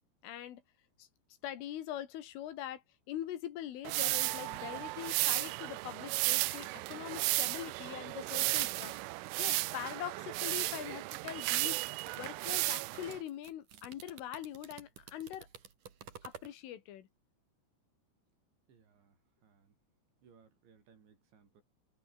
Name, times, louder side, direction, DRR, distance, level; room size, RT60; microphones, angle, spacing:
voice 1, 0.2-0.6 1.0-1.1 1.4-9.0 9.4-15.5 16.2-17.1, left 11 dB, 80° left, 4.6 m, -43 dB
sound 1, 3.8-13.2, right 21 dB, 90° right, 3.2 m, -34 dB
sound 2, 11.3-16.5, right 8 dB, 45° right, 3.8 m, -52 dB
voice 2, 18.7-19.8 20.2-21.6, right 6 dB, 65° right, 7.3 m, -64 dB
omnidirectional pair, 5.6 m